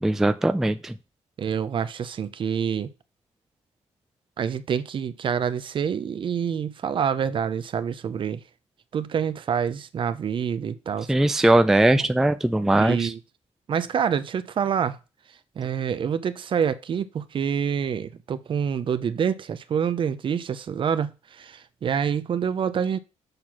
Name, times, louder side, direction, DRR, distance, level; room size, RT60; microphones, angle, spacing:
voice 1, 0.0-0.9 11.1-13.1, right 1 dB, 5° right, 0.4 m, -20 dB
voice 2, 1.4-2.9 4.4-8.4 8.9-11.4 11.9-12.0 12.8-13.2 13.7-15.0 15.6-23.0, right 7 dB, 45° right, 0.6 m, -27 dB
6.6 x 4.3 x 5.9 m
cardioid pair, 140°, 12 cm